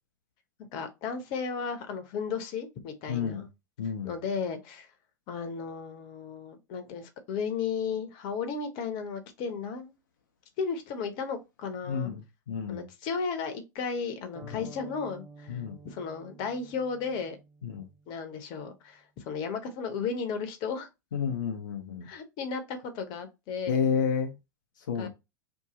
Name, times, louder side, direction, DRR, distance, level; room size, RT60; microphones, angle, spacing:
voice 1, 0.7-3.5 4.0-4.9 5.3-9.9 10.6-12.1 12.7-17.4 18.1-20.9 22.0-23.9 25.0-25.1, left 5 dB, 45° left, 0.9 m, -34 dB
voice 2, 3.1-3.4 3.8-4.1 11.8-12.9 14.5-14.6 15.5-15.8 17.6-17.9 21.1-22.1 23.7-24.3 24.9-25.1, left 7 dB, 75° left, 0.6 m, -30 dB
sound 1, 14.3-18.3, right 3 dB, 20° right, 0.7 m, -51 dB
2.8 x 2.6 x 3.8 m
hypercardioid pair, 95°, 10 cm